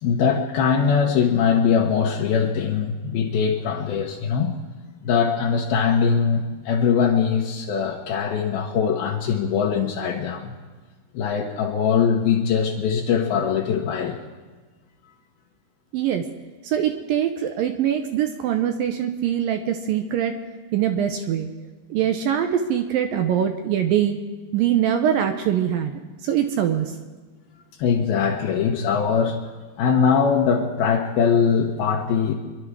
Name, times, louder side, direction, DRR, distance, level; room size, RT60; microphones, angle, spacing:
voice 1, 0.0-4.5 5.0-10.5 11.1-14.2 27.8-29.4 29.8-32.3, left 6 dB, 75° left, 0 dB, 2.7 m, -21 dB
voice 2, 15.9-16.3 16.6-20.4 20.7-21.5 21.9-24.2 24.5-26.9, right 9 dB, 75° right, 6 dB, 2.2 m, -23 dB
26.5 x 11.5 x 4.8 m, 1.3 s
omnidirectional pair, 4.7 m